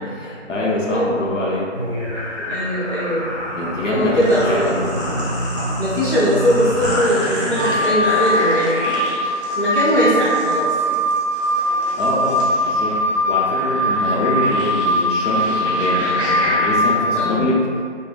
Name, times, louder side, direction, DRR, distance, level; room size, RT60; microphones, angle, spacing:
voice 1, 0.0-1.7 3.5-4.7 11.9-12.9 13.3-17.6, left 2 dB, 90° left, -5 dB, 0.7 m, -24 dB
sound 1, 1.8-16.7, equal, 45° right, 1.0 m, -27 dB
voice 2, 2.4-3.3 3.8-4.8 5.8-9.1 9.6-11.0 17.1-17.5, equal, 45° left, -10 dB, 0.6 m, -20 dB
Wind instrument woodwind instrument, 7.6-17.2, equal, 75° right, 0.6 m, -21 dB
2.4 x 2.1 x 3.1 m, 2.2 s
figure-of-eight pair, 175°, 36 cm